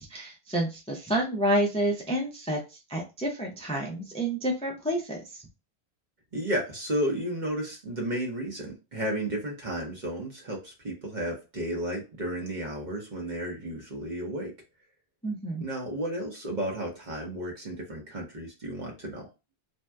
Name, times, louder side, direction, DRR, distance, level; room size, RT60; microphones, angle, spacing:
voice 1, 0.1-2.6 2.9-5.2 15.2-15.6, right 1 dB, 10° left, 0 dB, 0.4 m, -29 dB
voice 2, 6.3-14.5 15.6-19.3, right 1 dB, 45° right, 0 dB, 0.9 m, -33 dB
2.7 x 2.2 x 3.3 m, 0.27 s
omnidirectional pair, 1.1 m